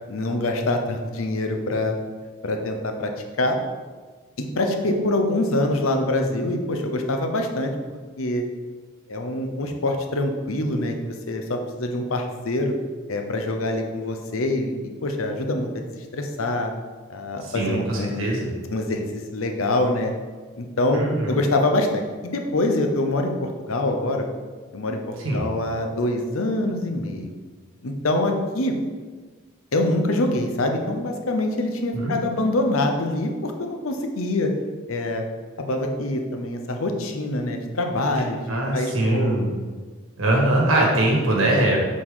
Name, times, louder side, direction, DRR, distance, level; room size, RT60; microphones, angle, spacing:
voice 1, 0.1-2.0 2.4-3.1 3.4-3.6 4.4-7.7 8.2-8.4 9.1-12.7 13.1-14.7 15.0-15.9 16.1-16.7 17.1-18.2 18.7-19.0 19.3-20.1 20.6-24.2 24.7-27.3 27.8-28.7 29.7-34.5 34.9-35.2 35.6-39.5, left 1 dB, 85° left, 4 dB, 0.8 m, -25 dB
voice 2, 17.4-18.5 20.9-21.4 25.2-25.4 31.9-32.1 38.5-39.5 40.2-41.8, right 1 dB, 85° right, -2 dB, 1.6 m, -22 dB
7.3 x 4.2 x 3.7 m, 1.5 s
head